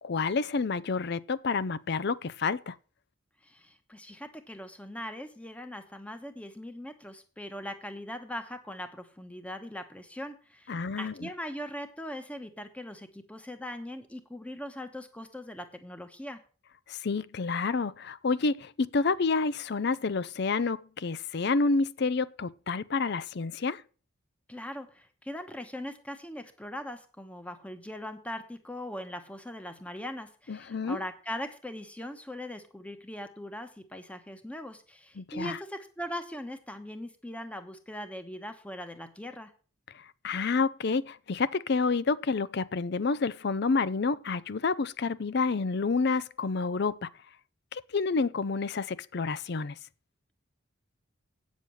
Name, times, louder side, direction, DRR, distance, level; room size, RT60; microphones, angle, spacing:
voice 1, 0.0-2.7 10.7-11.3 16.9-23.8 30.5-31.0 35.2-35.6 40.2-47.1 47.7-49.8, left 4 dB, 50° left, 0.5 m, -29 dB
voice 2, 3.4-16.4 24.5-39.5, equal, 5° left, 1.0 m, -40 dB
9.1 x 7.3 x 6.2 m
head